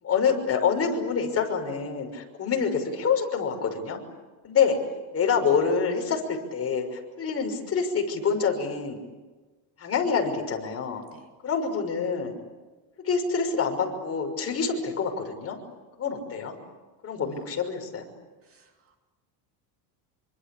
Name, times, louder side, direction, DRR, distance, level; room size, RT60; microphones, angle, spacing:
voice 1, 0.0-4.0 4.4-4.8 5.1-9.0 9.8-11.0 11.4-12.3 13.0-15.6 16.0-16.6 17.0-18.1, left 6 dB, 30° left, 3 dB, 6.0 m, -26 dB
voice 2, 18.4-19.0, right 10 dB, 30° right, 4 dB, 2.6 m, -52 dB
27.5 x 25.0 x 8.7 m, 1.3 s
cardioid pair, 145°, 46 cm